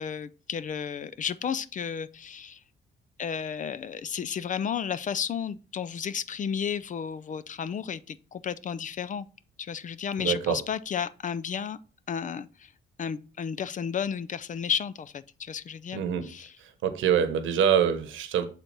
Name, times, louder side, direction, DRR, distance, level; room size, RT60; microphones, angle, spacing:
voice 1, 0.0-2.6 3.2-9.3 9.6-11.8 12.1-12.7 13.0-16.5, left 7 dB, 40° left, 0.4 m, -33 dB
voice 2, 10.2-10.6 15.9-16.3 16.6-18.5, right 8 dB, 80° right, 1.0 m, -25 dB
6.5 x 4.2 x 4.6 m
cardioid pair, 90°, 20 cm